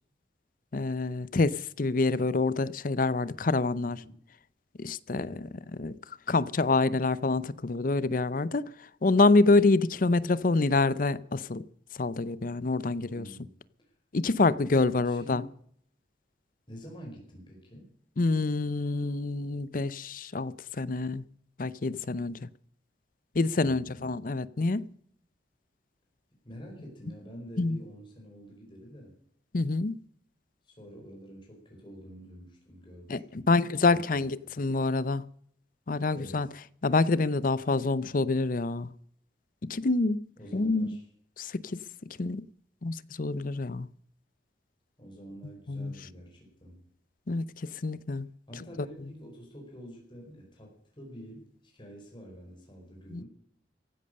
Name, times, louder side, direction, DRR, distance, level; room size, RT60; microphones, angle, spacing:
voice 1, 0.7-4.0 4.8-5.3 5.8-5.9 6.3-8.7 9.0-11.6 12.0-13.3 14.1-15.4 18.2-21.2 21.6-22.4 23.4-24.8 27.6-27.7 29.5-29.9 33.1-33.2 33.5-35.2 35.9-36.5 36.8-38.9 39.7-40.2 40.5-40.9 41.4-41.8 42.2-42.4 42.8-43.9 45.7-45.9 47.3-47.4 47.8-48.3 53.1-53.2, left 3 dB, 50° left, 0.6 m, -26 dB
voice 2, 3.9-4.2 5.1-5.5 12.9-13.5 15.0-15.5 16.7-17.9 23.6-24.2 26.4-29.2 30.6-33.5 33.9-34.5 36.1-36.6 40.4-41.1 45.0-46.9 48.5-53.2, equal, 30° left, 4.8 m, -48 dB
15.5 x 11.0 x 6.6 m
head